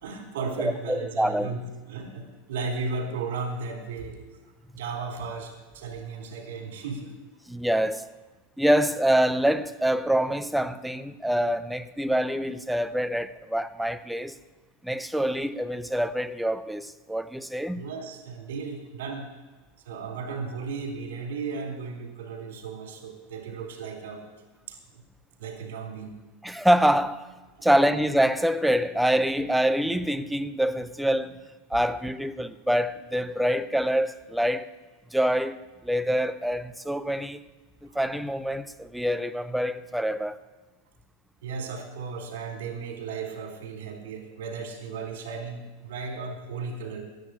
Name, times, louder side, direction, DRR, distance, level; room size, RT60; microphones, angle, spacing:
voice 1, 0.0-4.2 4.7-7.1 17.8-19.3 19.9-24.2 24.7-25.0 25.4-26.1 27.6-27.7 37.9-38.0 41.4-47.0, right 4 dB, 75° right, 3.5 m, -35 dB
voice 2, 0.6-1.5 7.5-8.1 8.6-14.4 14.8-17.9 26.4-27.3 27.6-31.4 31.7-34.7 35.1-37.4 37.9-40.4, equal, 5° right, 0.6 m, -25 dB
10.5 x 8.5 x 10.0 m
supercardioid pair, 125°, 0 cm